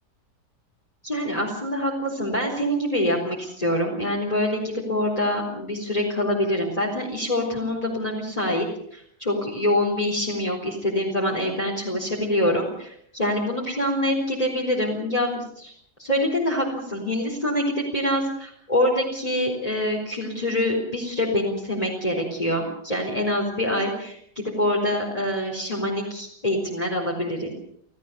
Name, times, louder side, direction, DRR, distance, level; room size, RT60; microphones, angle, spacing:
voice 1, 1.0-15.7 16.0-27.5, left 1 dB, 20° left, -2 dB, 4.4 m, -25 dB
29.0 x 16.5 x 6.9 m, 0.68 s
omnidirectional pair, 1.8 m